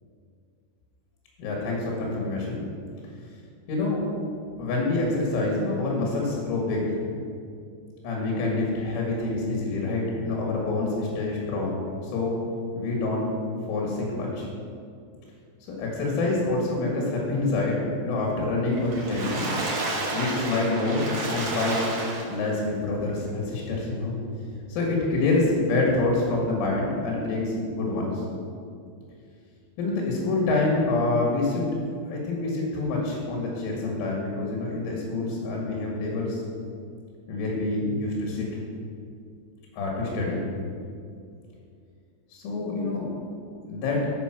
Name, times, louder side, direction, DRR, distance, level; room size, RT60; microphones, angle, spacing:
voice 1, 1.4-2.6 3.7-4.0 4.6-6.9 8.0-12.4 12.7-13.3 13.7-14.5 15.8-19.5 20.1-21.8 22.3-24.2 24.7-28.2 29.8-31.7 32.1-36.4 37.3-38.5 39.7-40.4 42.3-43.1 43.7-44.1, left 2 dB, 85° left, -2 dB, 4.4 m, -26 dB
Water / Splash splatter, 18.8-22.6 23.2-23.3 23.6-23.7, right 2 dB, 90° right, 1.4 m, -30 dB
13.5 x 5.5 x 6.0 m, 2.4 s
omnidirectional pair, 5.5 m